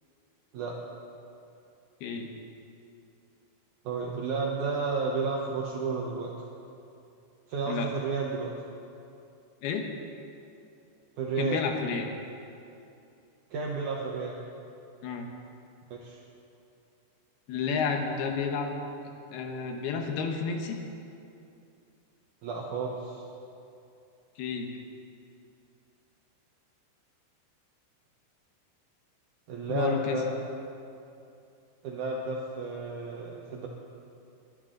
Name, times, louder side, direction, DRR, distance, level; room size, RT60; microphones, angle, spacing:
voice 1, 3.8-6.3 7.5-8.5 11.2-11.6 13.5-14.4 15.9-16.2 22.4-23.2 29.5-30.3 31.8-33.7, right 4 dB, 80° right, -2 dB, 1.7 m, -32 dB
voice 2, 11.4-12.1 15.0-15.3 17.5-18.7 19.3-20.8 24.4-24.7 29.7-30.2, left 6 dB, 70° left, 3 dB, 2.8 m, -31 dB
22.0 x 12.0 x 3.9 m, 2.7 s
omnidirectional pair, 5.1 m